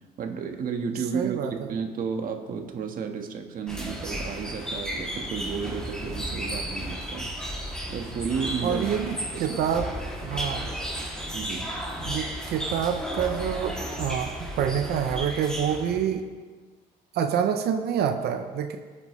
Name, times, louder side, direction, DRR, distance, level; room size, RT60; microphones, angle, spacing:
voice 1, 0.2-7.3 7.9-8.9 9.3-9.6 11.3-11.6, right 6 dB, 55° right, 4 dB, 1.6 m, -32 dB
voice 2, 1.1-1.7 8.6-9.9 10.2-10.7 12.0-16.2 17.1-18.8, right 8 dB, 70° right, 6 dB, 0.8 m, -27 dB
sound 1, 3.7-16.1, equal, 5° left, 2.8 m, -34 dB
20.0 x 8.6 x 3.3 m, 1.4 s
cardioid pair, 110°, 17 cm